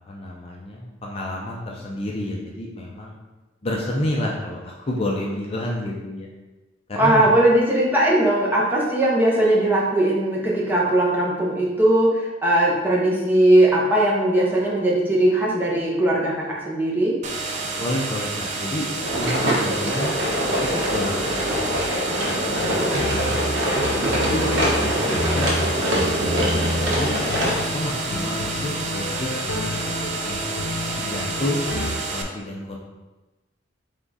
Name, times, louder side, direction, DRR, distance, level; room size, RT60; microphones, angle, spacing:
voice 1, 0.1-3.2 3.6-6.3 6.9-7.4 17.8-18.9 19.1-20.1 20.9-23.4 23.9-26.6 26.9-27.2 27.6-30.6 31.0-32.8, left 1 dB, 30° left, -2 dB, 0.5 m, -30 dB
voice 2, 7.0-17.1, right 1 dB, 10° right, -5 dB, 0.8 m, -19 dB
sound 1, 17.2-32.2, right 3 dB, 40° right, 0.5 m, -30 dB
sound 2, 19.0-27.6, equal, 65° right, 1.1 m, -24 dB
sound 3, 22.5-31.9, left 1 dB, 65° left, 0.8 m, -30 dB
3.6 x 3.5 x 4.0 m, 1.1 s
head